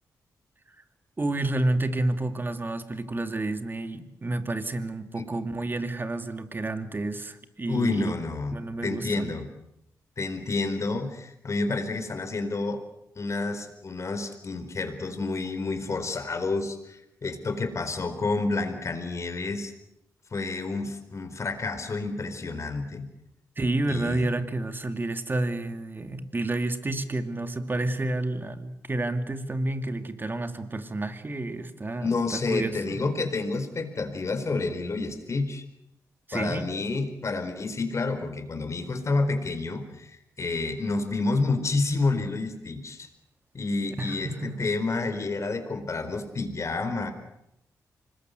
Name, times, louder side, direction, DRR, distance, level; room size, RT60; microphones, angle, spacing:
voice 1, 1.2-8.1 8.5-9.4 23.6-33.0 36.3-36.7 44.0-44.7, right 2 dB, 30° right, 9 dB, 2.5 m, -30 dB
voice 2, 7.7-8.5 8.8-9.5 10.2-12.8 13.2-19.7 20.3-23.1 23.9-24.3 32.0-35.6 36.3-43.1 43.5-47.1, left 3 dB, 50° left, 8 dB, 4.4 m, -29 dB
25.5 x 20.5 x 8.0 m, 0.82 s
cardioid pair, 60°, 7 cm